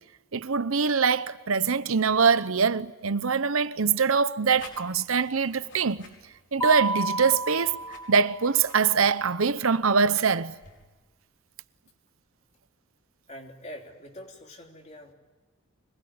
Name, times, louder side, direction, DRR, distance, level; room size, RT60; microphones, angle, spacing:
voice 1, 0.3-6.1 6.5-7.8 8.1-10.5, right 5 dB, 85° right, 0.9 m, -23 dB
sound 1, 4.6-10.8, left 3 dB, 60° left, 4.9 m, -52 dB
Mallet percussion, 6.6-8.7, right 3 dB, 15° left, 1.0 m, -31 dB
voice 2, 13.3-15.1, equal, 30° left, 3.2 m, -44 dB
25.5 x 20.5 x 9.7 m
head